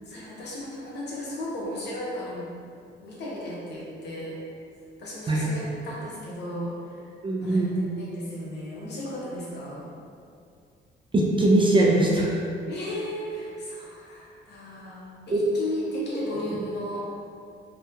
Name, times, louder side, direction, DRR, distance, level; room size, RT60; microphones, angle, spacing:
voice 1, 0.1-2.5 3.0-4.4 5.0-7.1 7.4-7.7 7.9-9.9 12.7-17.1, equal, 60° left, -5 dB, 0.7 m, -35 dB
voice 2, 7.2-7.8 11.1-12.4 15.3-15.4, right 2 dB, 25° right, -2 dB, 0.3 m, -21 dB
2.7 x 2.3 x 2.2 m, 2.4 s
cardioid pair, 90°, 20 cm